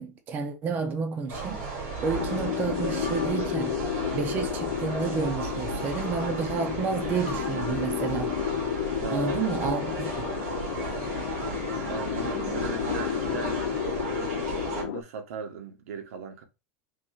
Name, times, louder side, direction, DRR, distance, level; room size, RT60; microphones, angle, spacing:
voice 1, 0.0-1.6 2.0-3.8 4.1-8.7 9.1-10.3, right 5 dB, 25° right, 0.6 m, -31 dB
sound 1, 1.3-14.8, right 4 dB, 50° right, 2.5 m, -34 dB
sound 2, 2.1-15.0, left 11 dB, 80° left, 0.4 m, -32 dB
voice 2, 9.0-9.6 11.9-13.6 14.1-16.4, right 6 dB, 85° right, 1.2 m, -38 dB
6.0 x 3.1 x 2.4 m
supercardioid pair, 170°, 8 cm